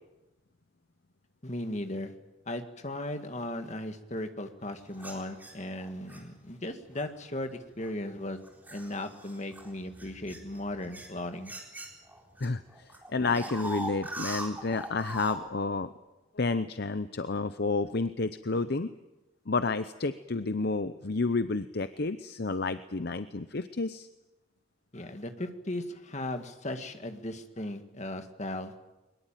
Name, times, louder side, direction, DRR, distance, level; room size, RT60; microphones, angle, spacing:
voice 1, 1.4-2.1 2.5-8.4 8.7-11.5 24.9-28.7, left 1 dB, 35° left, 6 dB, 2.0 m, -37 dB
sound 1, 5.0-6.2 7.0-7.2 7.8-12.5 12.7-15.4, right 1 dB, 10° right, 4.0 m, -41 dB
voice 2, 12.4-15.9 16.3-18.9 19.5-24.1, left 3 dB, 50° left, 11 dB, 0.7 m, -30 dB
22.5 x 21.0 x 9.1 m, 1.0 s
head